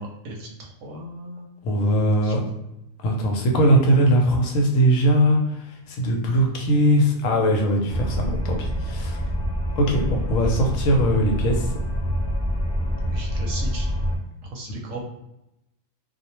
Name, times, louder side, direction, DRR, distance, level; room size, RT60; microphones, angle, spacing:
voice 1, 0.0-1.5 2.2-2.3 13.0-13.9 14.5-15.0, right 1 dB, 70° right, 0 dB, 0.9 m, -37 dB
voice 2, 1.6-2.4 3.0-9.2 9.8-11.7 14.7-14.8, right 1 dB, 80° left, 1 dB, 1.0 m, -20 dB
sound 1, 7.9-14.2, equal, 20° left, 0.4 m, -26 dB
2.4 x 2.0 x 2.9 m, 0.87 s
omnidirectional pair, 1.3 m